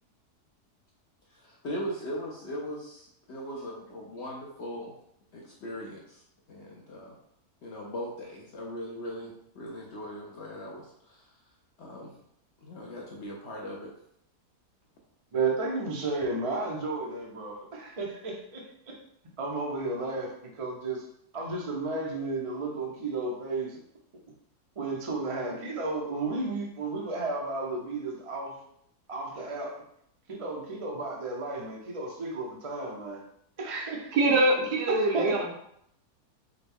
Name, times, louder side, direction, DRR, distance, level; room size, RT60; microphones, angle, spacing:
voice 1, 1.3-4.9 5.3-6.2 6.5-7.2 7.6-11.3 11.8-12.1 12.6-13.9, equal, 60° left, -2 dB, 0.7 m, -39 dB
voice 2, 15.3-19.0 19.4-21.0 21.3-23.8 24.8-28.6 29.1-29.8 30.3-33.2 33.6-34.2 35.0-35.5, right 3 dB, 55° right, -1 dB, 0.4 m, -33 dB
voice 3, 34.1-35.5, right 2 dB, 80° right, 1 dB, 1.4 m, -24 dB
5.1 x 2.2 x 3.5 m, 0.72 s
omnidirectional pair, 1.7 m